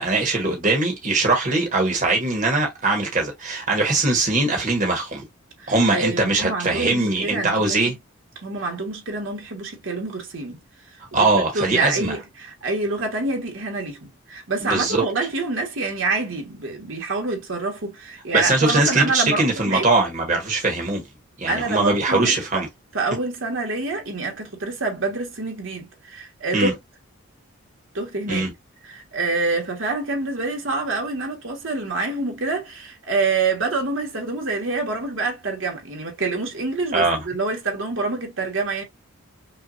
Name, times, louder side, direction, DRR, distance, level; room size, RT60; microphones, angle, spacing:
voice 1, 0.0-5.2 5.7-7.9 11.1-12.1 14.6-15.0 18.3-21.0 21.4-22.7 26.5-26.7 28.3-28.5 36.9-37.2, right 2 dB, 35° right, 1.2 m, -21 dB
voice 2, 5.6-7.9 8.4-10.6 10.9-11.0 11.5-19.9 21.5-22.6 22.9-26.8 27.9-28.4 28.8-38.8, right 3 dB, 65° right, 1.5 m, -27 dB
5.6 x 2.5 x 2.5 m
head